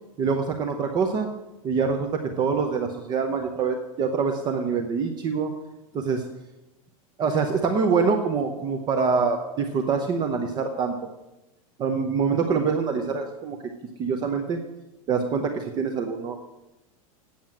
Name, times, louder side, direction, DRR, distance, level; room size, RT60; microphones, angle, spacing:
voice 1, 0.2-1.3 1.6-5.5 5.9-6.2 7.2-10.9 11.8-13.6 14.0-14.6 15.1-16.4, right 5 dB, 25° right, 4 dB, 0.7 m, -25 dB
9.0 x 7.1 x 7.6 m, 1.0 s
supercardioid pair, 160°, 18 cm